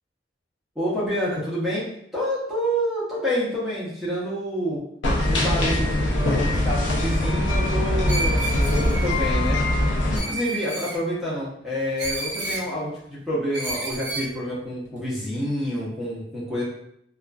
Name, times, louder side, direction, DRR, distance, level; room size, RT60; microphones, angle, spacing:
voice 1, 0.8-1.9 2.1-4.8 5.2-9.6 10.1-16.6, equal, ahead, -9 dB, 0.6 m, -28 dB
sound 1, 5.0-10.2, left 1 dB, 90° left, 0.5 m, -22 dB
Screech, 8.1-9.1 10.1-11.0 12.0-12.7 13.5-14.3, right 2 dB, 70° right, 0.6 m, -30 dB
2.4 x 2.3 x 2.2 m, 0.75 s
head